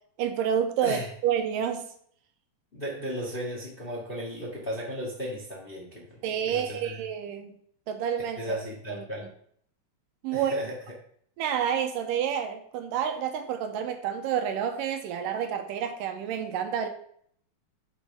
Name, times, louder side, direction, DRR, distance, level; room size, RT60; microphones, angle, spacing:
voice 1, 0.2-1.9 6.2-7.5 7.9-8.4 8.9-9.0 10.2-10.5 11.4-16.9, right 8 dB, 80° right, 6 dB, 2.3 m, -29 dB
voice 2, 2.7-6.2 6.4-7.0 8.4-9.3 10.3-10.8, equal, 25° left, -3 dB, 1.2 m, -35 dB
9.4 x 6.2 x 3.5 m, 0.63 s
omnidirectional pair, 4.0 m